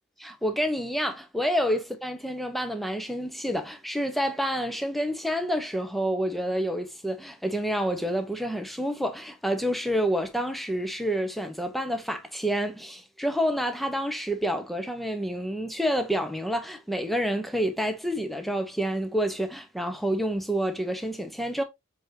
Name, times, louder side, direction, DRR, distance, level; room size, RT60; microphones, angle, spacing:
voice 1, 0.2-21.6, equal, ahead, 1.1 m, -28 dB
7.3 x 4.7 x 2.9 m
head